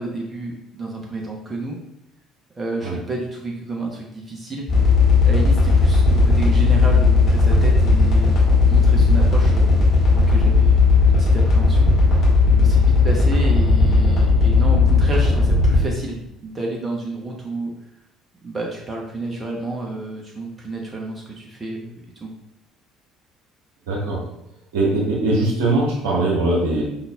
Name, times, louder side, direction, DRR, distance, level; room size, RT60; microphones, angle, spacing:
voice 1, 0.0-1.8 2.6-4.7 5.3-8.3 8.7-9.8 10.1-10.8 11.2-11.9 12.5-17.7 18.4-22.3, right 2 dB, 25° right, -1 dB, 0.8 m, -30 dB
sound 1, 4.7-15.8, left 3 dB, 45° left, 1.7 m, -15 dB
voice 2, 23.9-24.2 24.7-26.8, right 2 dB, 65° right, -4 dB, 1.4 m, -21 dB
5.3 x 4.0 x 2.3 m, 0.81 s
figure-of-eight pair, 55°, 0 cm